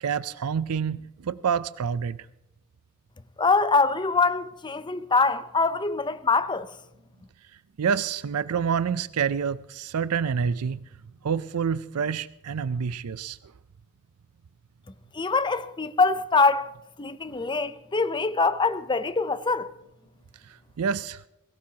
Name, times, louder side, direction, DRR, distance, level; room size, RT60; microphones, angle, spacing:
voice 1, 0.0-2.2 7.8-10.8 11.2-13.4 20.4-21.2, right 7 dB, 75° right, 0.5 m, -27 dB
voice 2, 3.4-6.7 15.1-16.7 17.0-19.7, left 4 dB, 20° left, 0.6 m, -24 dB
22.5 x 17.5 x 2.9 m
head